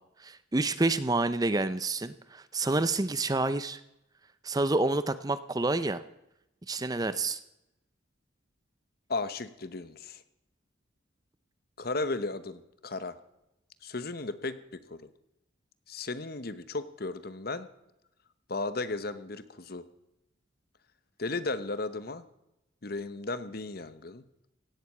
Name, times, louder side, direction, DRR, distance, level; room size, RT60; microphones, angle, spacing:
voice 1, 0.2-3.8 4.4-6.0 6.7-7.4, right 2 dB, 20° right, 14 dB, 0.6 m, -28 dB
voice 2, 9.1-10.2 11.8-13.1 13.8-15.0 15.9-17.7 18.5-19.8 21.2-22.2 22.8-24.2, left 3 dB, 50° left, 13 dB, 1.0 m, -35 dB
17.0 x 8.0 x 8.5 m, 0.86 s
head